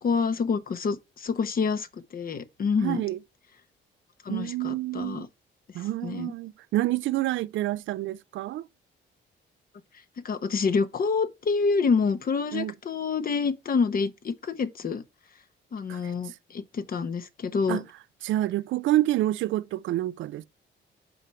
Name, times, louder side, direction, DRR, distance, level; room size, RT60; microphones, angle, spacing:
voice 1, 0.0-3.0 4.2-5.3 5.7-6.3 10.2-15.0 15.7-17.8, left 5 dB, 45° left, 1.1 m, -27 dB
voice 2, 2.8-3.2 4.3-5.3 5.7-8.7 12.5-12.7 15.9-16.1 17.7-17.8 18.2-20.4, right 15 dB, 75° right, 0.4 m, -28 dB
7.7 x 4.8 x 4.4 m
cardioid pair, 90°, 20 cm